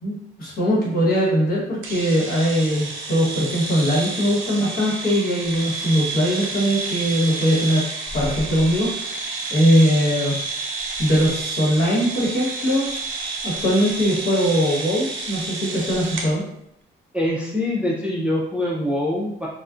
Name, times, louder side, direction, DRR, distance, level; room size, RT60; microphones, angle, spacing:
voice 1, 0.0-7.9 8.1-9.1 9.5-10.4 11.0-12.9 13.4-16.4, equal, 45° left, -6 dB, 1.2 m, -21 dB
sound 1, 1.8-16.3, right 3 dB, 85° right, 0.5 m, -30 dB
voice 2, 17.1-19.5, left 1 dB, 5° right, -4 dB, 0.4 m, -24 dB
2.3 x 2.1 x 2.4 m, 0.74 s
cardioid pair, 90°, 20 cm